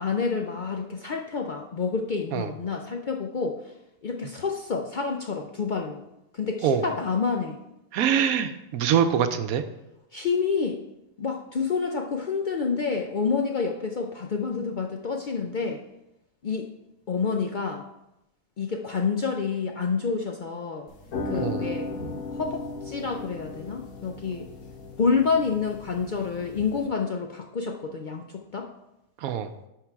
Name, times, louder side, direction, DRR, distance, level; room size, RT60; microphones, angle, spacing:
voice 1, 0.0-3.6 4.0-6.0 6.3-7.6 10.1-10.8 11.2-15.8 16.4-16.7 17.1-17.8 18.6-20.9 21.3-21.9 22.3-24.5 25.0-28.7, left 5 dB, 70° left, 2 dB, 0.4 m, -28 dB
voice 2, 7.9-9.6 21.4-21.7 29.2-29.5, right 8 dB, 80° right, 9 dB, 1.1 m, -24 dB
sound 1, 20.9-26.9, left 2 dB, 85° left, 1.6 m, -36 dB
11.0 x 3.8 x 4.6 m, 0.89 s
omnidirectional pair, 1.5 m